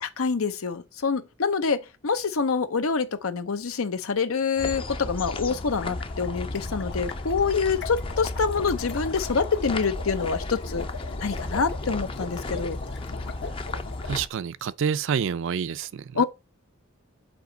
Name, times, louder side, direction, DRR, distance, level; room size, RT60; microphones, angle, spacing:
voice 1, 0.0-10.9 11.2-12.8 16.1-16.2, left 5 dB, 85° left, 0.7 m, -26 dB
sound 1, 4.6-14.3, left 2 dB, 25° left, 0.5 m, -34 dB
sound 2, 5.8-14.1, left 5 dB, 55° left, 0.8 m, -40 dB
voice 2, 14.1-16.2, right 7 dB, 60° right, 0.4 m, -28 dB
7.1 x 4.1 x 3.9 m
head